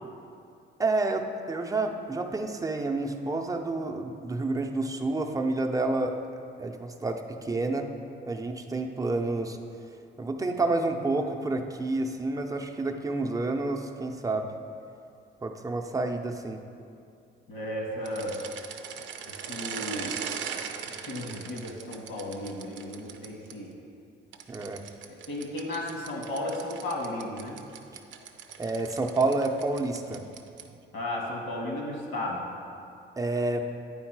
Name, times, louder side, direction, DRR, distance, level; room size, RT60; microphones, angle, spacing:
voice 1, 0.8-7.9 8.2-9.6 10.2-14.5 15.4-16.6 24.5-24.8 27.9-28.0 28.6-30.2 33.2-33.6, right 2 dB, 15° right, 3 dB, 0.6 m, -29 dB
voice 2, 17.5-18.4 19.5-20.2 20.9-23.7 25.1-27.6 30.9-32.4, left 1 dB, 80° left, -1 dB, 1.5 m, -34 dB
sound 1, 18.0-23.5 24.3-30.8, right 7 dB, 70° right, 0.5 m, -40 dB
9.5 x 3.6 x 4.7 m, 2.5 s
cardioid pair, 90°, 20 cm